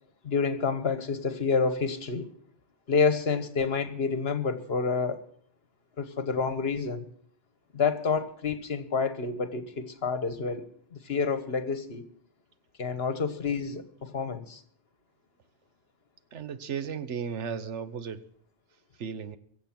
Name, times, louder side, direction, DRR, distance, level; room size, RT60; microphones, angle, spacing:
voice 1, 0.2-2.3 2.9-5.2 6.0-7.1 7.7-10.6 10.9-12.0 12.8-14.6, left 5 dB, 60° left, 1.4 m, -28 dB
voice 2, 16.3-18.2 19.0-19.4, right 7 dB, 85° right, 1.3 m, -35 dB
23.0 x 7.8 x 5.9 m
omnidirectional pair, 1.2 m